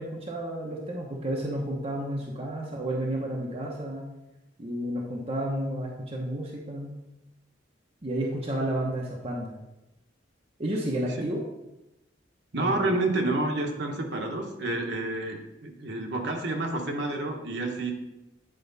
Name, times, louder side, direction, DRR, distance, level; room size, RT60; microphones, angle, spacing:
voice 1, 0.0-4.1 4.6-7.0 8.0-9.5 10.6-11.4 12.6-12.9, right 1 dB, 35° right, -2 dB, 1.0 m, -31 dB
voice 2, 12.5-17.9, right 2 dB, 65° right, 2 dB, 1.1 m, -29 dB
9.1 x 4.6 x 4.0 m, 0.94 s
head